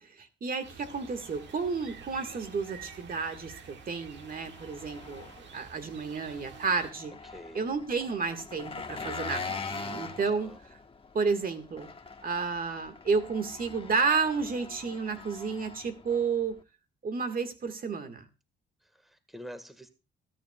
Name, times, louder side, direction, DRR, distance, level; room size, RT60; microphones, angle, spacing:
voice 1, 0.0-7.1 7.6-10.5 11.1-11.9 12.2-16.6 17.0-18.3, right 5 dB, 45° right, 7 dB, 1.8 m, -31 dB
sound 1, 0.6-6.9, right 7 dB, 65° right, 1.5 m, -49 dB
Engine, 0.8-16.6, left 4 dB, 25° left, 1.3 m, -44 dB
voice 2, 7.2-7.7 10.2-10.6 18.8-19.9, equal, ahead, 10 dB, 1.7 m, -47 dB
22.5 x 9.4 x 2.4 m, 0.29 s
cardioid pair, 90°, 20 cm